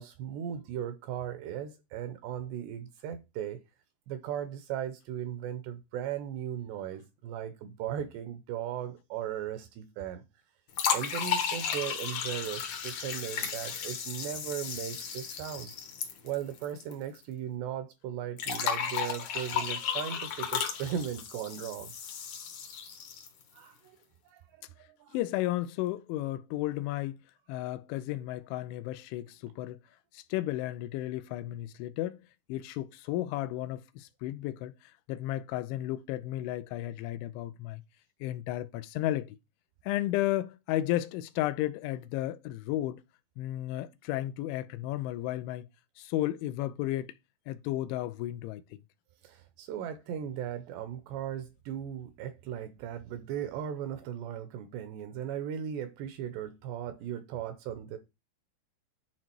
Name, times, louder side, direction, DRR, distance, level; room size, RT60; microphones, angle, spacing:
voice 1, 0.0-3.6 4.1-10.2 10.9-15.7 16.2-21.9 23.5-24.0 24.2-25.2 49.2-58.0, right 10 dB, 80° right, 2.6 m, -37 dB
sound 1, 10.7-16.9 17.2-17.3 18.4-23.4, left 8 dB, 65° left, 2.0 m, -34 dB
voice 2, 25.1-27.2 27.5-29.8 30.1-32.2 32.5-37.8 38.2-39.4 39.8-43.0 43.4-45.7 46.0-47.1 47.5-48.6, left 14 dB, 85° left, 2.9 m, -33 dB
11.0 x 3.7 x 4.5 m
omnidirectional pair, 5.4 m